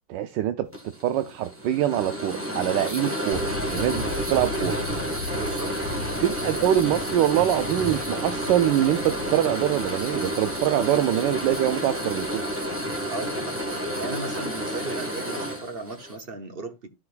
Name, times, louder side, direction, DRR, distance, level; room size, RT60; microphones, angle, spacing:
voice 1, 0.1-0.7 1.0-3.4 3.7-4.8 6.2-12.4, right 12 dB, 80° right, 1.3 m, -24 dB
sound 1, 0.7-16.2, equal, 10° right, 1.4 m, -30 dB
sound 2, 3.3-14.8, left 1 dB, 60° left, 1.6 m, -38 dB
voice 2, 5.4-5.7 13.1-13.6 14.0-16.9, right 3 dB, 45° right, 0.8 m, -36 dB
13.5 x 5.0 x 2.4 m
omnidirectional pair, 2.0 m